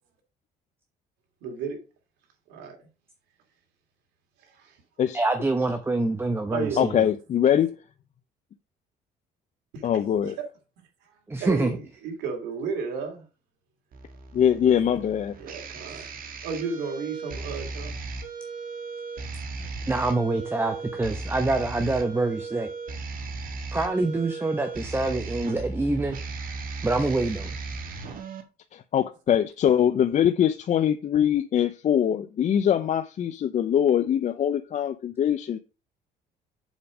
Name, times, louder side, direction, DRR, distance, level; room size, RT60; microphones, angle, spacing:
voice 1, 1.4-1.8 2.5-2.8 4.4-4.8 6.5-7.1 9.7-9.9 10.2-10.3 11.0-11.1 11.4-13.2 14.6-15.0 15.4-16.1 16.4-17.9, right 5 dB, 90° right, 2.6 m, -33 dB
voice 2, 5.1-7.0 11.3-11.8 19.6-22.7 23.7-26.2 26.8-27.5, right 2 dB, 15° right, 1.0 m, -26 dB
voice 3, 6.8-7.7 9.8-10.3 14.3-15.4 28.7-35.6, left 9 dB, 45° left, 0.6 m, -23 dB
sound 1, 13.9-28.4, right 3 dB, 55° right, 1.7 m, -36 dB
7.3 x 5.2 x 5.1 m
cardioid pair, 110°, 17 cm